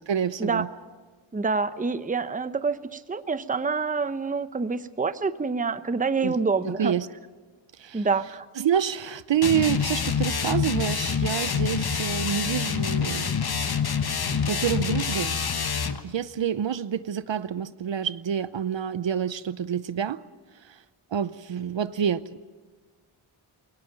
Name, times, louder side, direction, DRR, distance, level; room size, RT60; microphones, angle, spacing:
voice 1, 0.1-0.7 6.2-6.4 6.6-7.1 7.8-8.1 8.6-13.3 14.5-15.4 16.0-20.2 20.6-20.8 21.1-22.4, right 8 dB, 60° right, 15 dB, 0.8 m, -27 dB
voice 2, 1.3-6.9 7.9-8.5, right 4 dB, 15° right, 13 dB, 0.7 m, -27 dB
sound 1, 9.4-16.0, left 6 dB, 45° left, 1.3 m, -26 dB
22.0 x 18.0 x 8.9 m, 1.4 s
wide cardioid pair, 120°, 50 cm